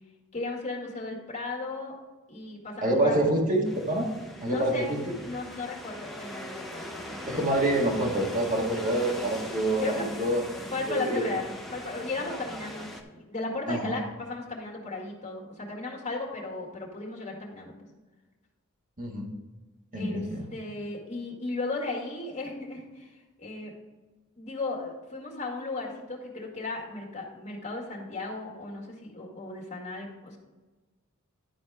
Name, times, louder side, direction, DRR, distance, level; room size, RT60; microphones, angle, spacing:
voice 1, 0.3-2.0 2.3-3.2 4.4-4.8 5.2-7.3 9.8-10.1 10.7-17.7 20.0-20.2 20.5-23.7 24.4-30.4, left 3 dB, 30° left, -2 dB, 2.1 m, -35 dB
voice 2, 2.8-4.1 4.4-5.1 7.3-10.4 10.9-11.3 13.7-13.9 19.0-19.3 19.9-20.5, right 1 dB, 40° right, 0 dB, 1.7 m, -26 dB
sound 1, 3.6-13.0, equal, ahead, 0.9 m, -40 dB
12.0 x 4.3 x 4.8 m, 1.2 s
head